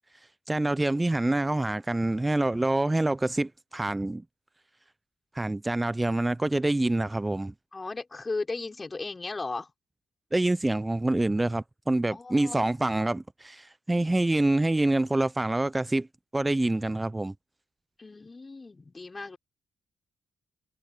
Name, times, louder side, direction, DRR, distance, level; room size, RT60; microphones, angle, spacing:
voice 1, 0.5-4.2 5.3-7.5 10.3-16.1 16.3-17.3, right 2 dB, 20° right, 0.3 m, -26 dB
voice 2, 7.7-9.7 12.1-12.7 18.0-19.4, left 3 dB, 30° left, 5.0 m, -36 dB
supercardioid pair, 50°, 0 cm